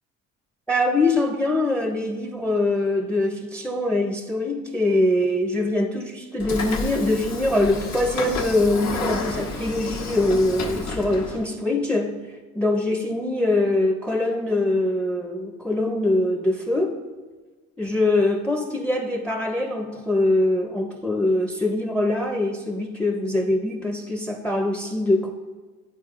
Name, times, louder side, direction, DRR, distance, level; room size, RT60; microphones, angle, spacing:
voice 1, 0.7-12.2 12.5-17.0 17.8-25.3, left 2 dB, 5° left, 4 dB, 0.6 m, -23 dB
Train / Sliding door, 6.4-11.5, left 3 dB, 65° left, 1.1 m, -31 dB
11.0 x 4.3 x 2.4 m, 1.3 s
cardioid pair, 90°, 30 cm